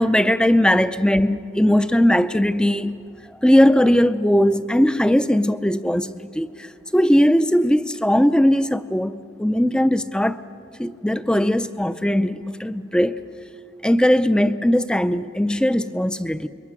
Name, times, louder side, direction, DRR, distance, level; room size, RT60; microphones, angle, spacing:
voice 1, 0.0-3.0 3.4-6.7 6.9-10.4 10.8-13.2 13.8-16.5, equal, 5° left, 0.5 m, -19 dB
28.0 x 23.0 x 6.2 m
head